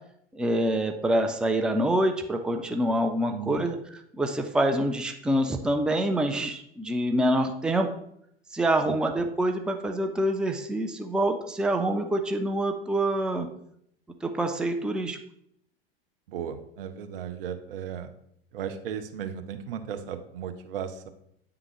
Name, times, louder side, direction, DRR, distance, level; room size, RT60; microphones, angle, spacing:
voice 1, 0.3-3.8 4.1-7.9 8.5-13.5 14.2-15.2, right 1 dB, 5° right, 5 dB, 0.5 m, -26 dB
voice 2, 3.3-3.7 8.8-9.0 16.3-18.1 18.5-21.1, right 8 dB, 70° right, 9 dB, 0.7 m, -36 dB
9.0 x 3.7 x 3.1 m, 0.73 s
hypercardioid pair, 80°, 30 cm